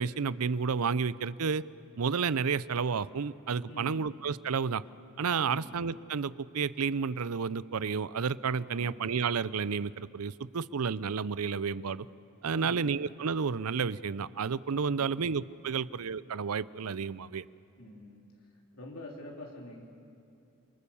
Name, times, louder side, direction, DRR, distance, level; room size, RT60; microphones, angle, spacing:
voice 1, 0.0-1.6 2.0-4.8 5.2-12.1 12.4-17.4, right 5 dB, 85° right, 18 dB, 0.6 m, -31 dB
voice 2, 3.7-4.0 5.3-5.7 8.6-8.9 12.5-12.9 14.8-15.1 15.6-15.7 17.8-18.2 18.7-19.8, left 1 dB, 75° left, -1 dB, 3.2 m, -46 dB
30.0 x 24.0 x 7.1 m, 2.7 s
head